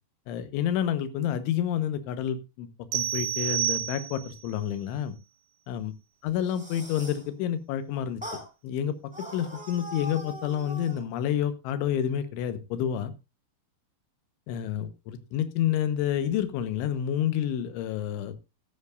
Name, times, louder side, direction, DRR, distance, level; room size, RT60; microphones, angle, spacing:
voice 1, 0.3-2.7 2.9-5.1 5.7-5.9 6.2-8.2 8.6-8.9 9.3-13.1 14.5-18.3, left 10 dB, 80° left, 11 dB, 3.4 m, -29 dB
sound 1, 2.9-4.5, right 12 dB, 70° right, 3.2 m, -29 dB
sound 2, 6.3-7.3 8.2-8.5 9.1-11.0, equal, 5° right, 1.7 m, -41 dB
13.0 x 12.5 x 2.5 m, 0.26 s
omnidirectional pair, 5.7 m